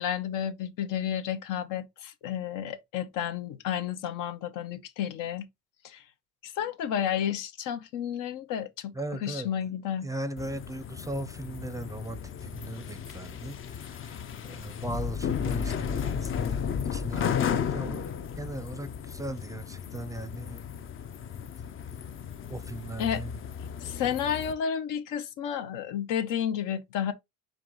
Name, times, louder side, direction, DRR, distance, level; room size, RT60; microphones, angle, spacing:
voice 1, 0.0-5.5 5.8-6.0 6.4-8.9 9.2-10.1 23.0-23.2 23.8-27.1, left 9 dB, 75° left, 0.8 m, -31 dB
voice 2, 8.9-9.5 10.0-16.6 16.9-18.0 18.4-20.6 22.5-23.4, right 1 dB, 10° right, 0.5 m, -38 dB
sound 1, 10.4-24.5, left 7 dB, 40° left, 0.5 m, -34 dB
4.6 x 2.5 x 3.8 m
cardioid pair, 90°, 32 cm